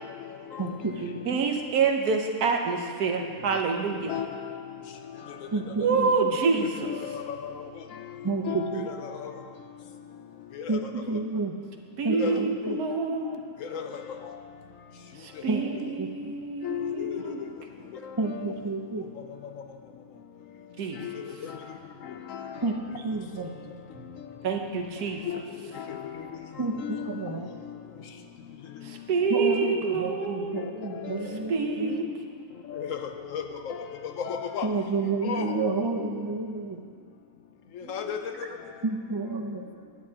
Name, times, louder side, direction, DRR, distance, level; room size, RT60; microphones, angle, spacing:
voice 1, 0.6-1.2 5.5-6.4 8.2-8.9 10.7-11.5 12.0-12.8 15.5-15.7 16.0-16.3 18.2-19.0 22.6-23.5 26.6-27.5 29.3-32.1 34.6-36.8 38.8-39.6, right 3 dB, 35° right, 2 dB, 0.4 m, -30 dB
voice 2, 1.3-4.1 5.8-6.9 12.0-13.4 15.2-17.5 20.8-21.0 24.4-25.2 28.8-30.5 31.5-32.0 37.8-38.0, right 5 dB, 80° right, 3 dB, 1.5 m, -27 dB
voice 3, 4.1-4.6 6.9-7.4 8.5-9.3 10.7-10.8 12.2-12.5 13.2-13.3 13.7-14.0 16.6-17.2 18.3-18.4 21.0-21.1 22.3-22.5 25.3-25.4 25.8-26.2 26.8-27.1 29.5-29.6 30.5-30.7 31.0-31.1 32.0-32.1 32.7-33.0 33.3-33.8 34.2-34.7 35.2-35.6 36.0-36.1 37.9-38.3, left 8 dB, 65° left, 6 dB, 0.9 m, -33 dB
16.5 x 9.8 x 2.9 m, 2.1 s
omnidirectional pair, 1.6 m